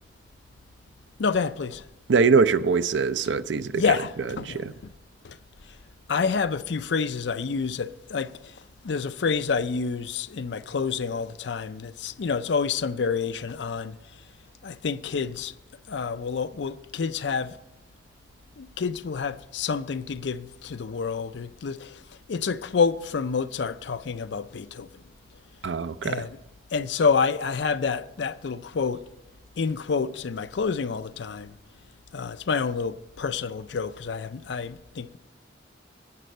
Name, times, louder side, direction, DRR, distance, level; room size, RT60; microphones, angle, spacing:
voice 1, 1.2-1.9 3.8-4.6 5.2-5.4 5.7-5.8 6.1-8.5 8.8-14.0 14.6-15.5 15.9-17.6 18.6-22.0 22.3-25.0 26.0-26.4 26.7-29.0 29.6-31.6 32.1-35.2, left 5 dB, 75° left, 0.5 m, -28 dB
voice 2, 2.1-4.0 4.4-4.7 25.6-26.3, right 5 dB, 80° right, 0.5 m, -23 dB
11.0 x 10.0 x 5.3 m
head